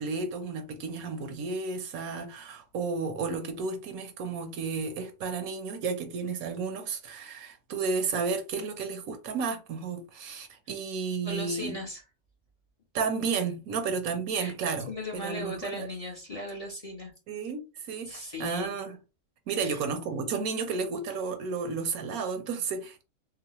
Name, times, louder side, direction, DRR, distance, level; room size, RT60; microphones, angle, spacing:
voice 1, 0.0-11.7 12.9-15.9 17.3-19.0 19.5-23.0, right 5 dB, 80° right, 1.2 m, -32 dB
voice 2, 11.2-12.0 14.4-14.5 14.9-17.1 18.0-18.7 19.5-19.8, left 1 dB, 30° left, 0.7 m, -37 dB
3.9 x 2.0 x 2.9 m
omnidirectional pair, 1.5 m